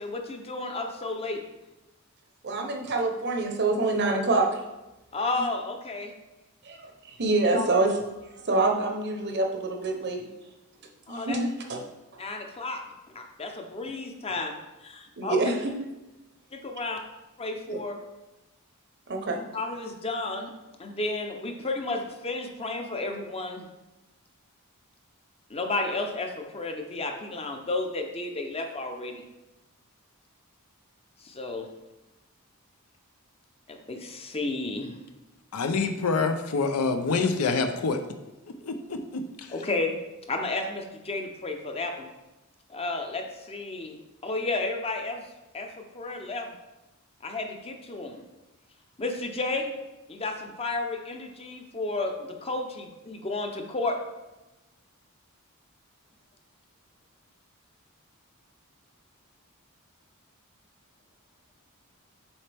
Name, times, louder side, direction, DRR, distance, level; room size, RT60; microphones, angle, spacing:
voice 1, 0.0-1.4 5.1-6.1 7.5-7.7 11.1-11.4 12.2-12.8 13.1-14.5 14.8-15.4 16.5-17.0 17.4-18.0 19.5-20.5 20.8-23.7 25.5-29.3 31.2-31.7 33.7-35.0 39.5-40.0 40.3-42.1 42.7-44.0 44.2-45.3 45.5-46.5 47.2-48.2 49.0-49.8 50.1-54.0, left 2 dB, 25° left, 4 dB, 0.7 m, -32 dB
voice 2, 2.4-4.6 6.7-8.0 8.5-10.2 11.1-11.8 15.2-15.7 17.7-17.8 19.1-19.4, right 2 dB, 50° right, 3 dB, 0.8 m, -26 dB
voice 3, 35.5-38.0 38.6-39.5, left 4 dB, 85° left, 7 dB, 0.6 m, -26 dB
7.1 x 4.4 x 3.4 m, 1.0 s
head